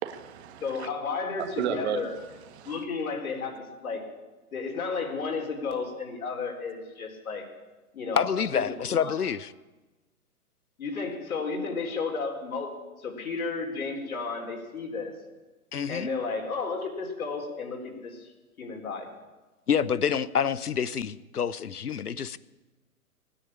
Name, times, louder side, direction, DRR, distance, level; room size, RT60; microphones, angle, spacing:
voice 1, 0.0-0.9 1.4-2.8, right 9 dB, 45° right, 9 dB, 1.6 m, -34 dB
voice 2, 0.6-2.1 2.6-4.0 4.5-7.5 7.9-8.6 9.0-9.2 10.8-15.1 15.9-18.3 18.6-19.1, left 4 dB, 70° left, 3 dB, 4.0 m, -33 dB
voice 3, 8.2-9.5 15.7-16.1 19.7-22.4, left 7 dB, 90° left, 18 dB, 0.8 m, -27 dB
17.0 x 9.9 x 8.7 m, 1.2 s
hypercardioid pair, 130°, 44 cm